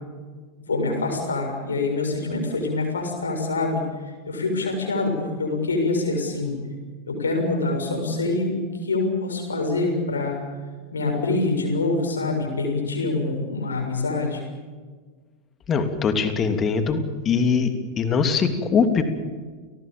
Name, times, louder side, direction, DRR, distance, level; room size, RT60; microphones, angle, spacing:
voice 1, 0.7-3.8 4.3-6.6 7.1-10.4 10.9-14.4, left 3 dB, 75° left, 2 dB, 6.9 m, -25 dB
voice 2, 15.7-19.0, left 5 dB, 25° left, 7 dB, 3.0 m, -22 dB
30.0 x 19.5 x 7.2 m, 1.5 s
figure-of-eight pair, 90°, 0 cm